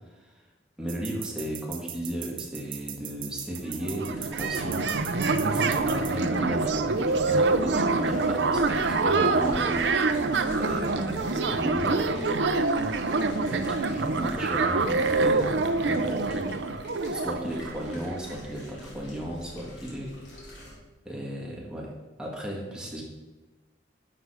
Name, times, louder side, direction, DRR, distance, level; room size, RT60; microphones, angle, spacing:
voice 1, 0.8-12.6 13.4-16.5 17.1-20.5 21.0-21.9 22.2-23.0, equal, 5° right, -3 dB, 1.9 m, -35 dB
sound 1, 0.9-6.1, right 11 dB, 50° right, 1.0 m, -39 dB
sound 2, 3.5-3.6 3.8-18.4, right 3 dB, 70° right, 0.7 m, -26 dB
sound 3, 4.0-20.8, equal, 80° left, 3.2 m, -45 dB
11.0 x 6.9 x 4.9 m, 1.2 s
head